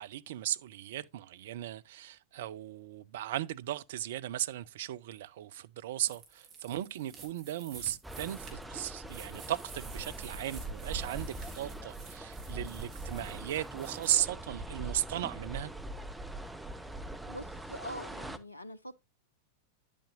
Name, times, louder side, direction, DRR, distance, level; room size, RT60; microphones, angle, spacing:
voice 1, 0.0-15.7, right 12 dB, 55° right, 0.5 m, -36 dB
sound 1, 6.0-14.2, right 5 dB, 35° right, 3.0 m, -51 dB
sound 2, 8.0-18.4, right 2 dB, 5° right, 0.8 m, -42 dB
voice 2, 17.3-19.0, equal, 85° left, 0.4 m, -44 dB
10.0 x 8.4 x 2.6 m
figure-of-eight pair, 90°, 0 cm